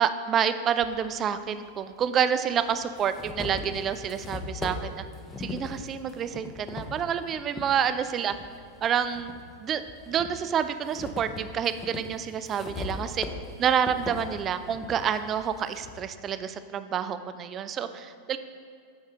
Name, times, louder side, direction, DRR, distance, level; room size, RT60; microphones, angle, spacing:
voice 1, 0.0-5.0 5.4-8.3 8.8-9.3 9.6-13.2 13.6-18.4, right 8 dB, 30° right, 11 dB, 0.3 m, -28 dB
sound 1, 0.8-0.9 2.0-2.1 2.6-7.7 8.2-9.4 9.9-16.0, left 3 dB, 20° left, 0.7 m, -39 dB
8.4 x 5.4 x 3.7 m, 2.2 s
figure-of-eight pair, 90°, 0 cm